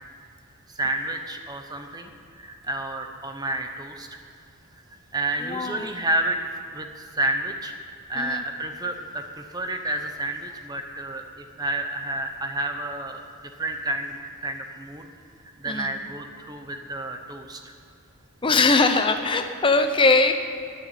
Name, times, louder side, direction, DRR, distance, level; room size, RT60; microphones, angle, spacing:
voice 1, 0.7-4.1 4.9-6.4 6.7-7.8 8.1-13.3 13.6-15.1 15.6-17.8, right 1 dB, 15° right, 5 dB, 0.8 m, -30 dB
voice 2, 5.4-5.9 8.2-8.4 15.6-15.9 18.4-20.3, left 3 dB, 20° left, 7 dB, 0.7 m, -21 dB
12.0 x 6.8 x 9.2 m, 2.5 s
head